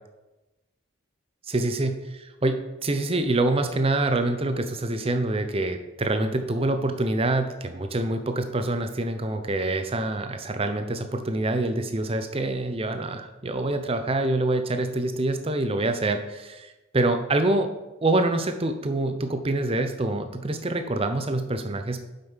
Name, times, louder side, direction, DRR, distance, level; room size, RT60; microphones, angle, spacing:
voice 1, 1.5-17.7 18.0-22.1, right 2 dB, 25° right, 7 dB, 0.6 m, -26 dB
7.8 x 5.3 x 5.6 m, 1.1 s
head